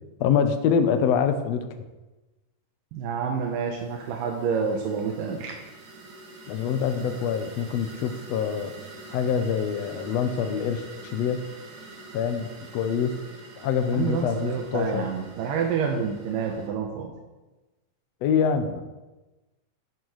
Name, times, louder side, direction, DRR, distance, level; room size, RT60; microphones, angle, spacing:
voice 1, 0.2-1.6 6.5-8.7 9.1-10.8 11.1-11.4 12.1-13.1 13.6-15.0 18.2-18.8, left 7 dB, 80° left, 7 dB, 1.5 m, -25 dB
voice 2, 2.9-5.7 13.9-17.1, right 6 dB, 85° right, 2 dB, 2.6 m, -28 dB
sound 1, 3.3-16.7, right 2 dB, 65° right, 3.0 m, -46 dB
11.5 x 10.5 x 3.2 m, 1.1 s
omnidirectional pair, 3.9 m